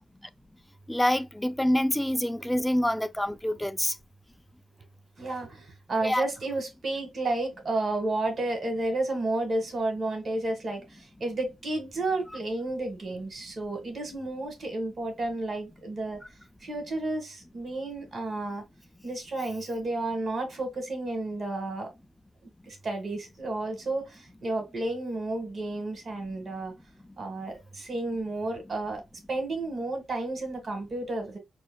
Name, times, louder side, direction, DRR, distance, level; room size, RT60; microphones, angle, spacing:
voice 1, 0.9-3.9 6.0-6.3, left 1 dB, 5° left, 0.5 m, -26 dB
voice 2, 5.2-16.2 16.6-18.6 19.0-21.9 22.6-26.7 27.2-29.0 29.3-31.4, right 2 dB, 55° right, 1.7 m, -32 dB
6.0 x 2.4 x 2.2 m
cardioid pair, 55°, 0 cm